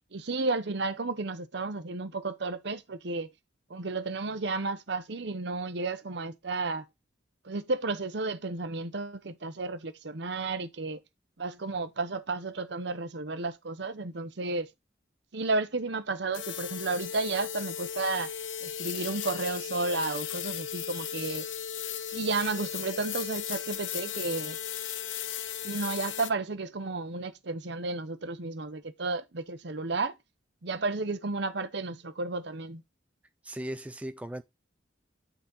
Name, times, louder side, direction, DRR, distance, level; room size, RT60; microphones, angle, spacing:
voice 1, 0.1-3.3 3.7-6.8 7.4-11.0 11.4-14.7 15.3-18.3 18.6-21.5 22.1-24.6 25.6-30.1 30.6-32.8, right 3 dB, 65° right, 0.9 m, -32 dB
sound 1, 16.3-26.3, left 9 dB, 80° left, 0.7 m, -36 dB
voice 2, 33.4-34.4, right 1 dB, 5° right, 0.4 m, -37 dB
8.7 x 4.0 x 3.9 m
head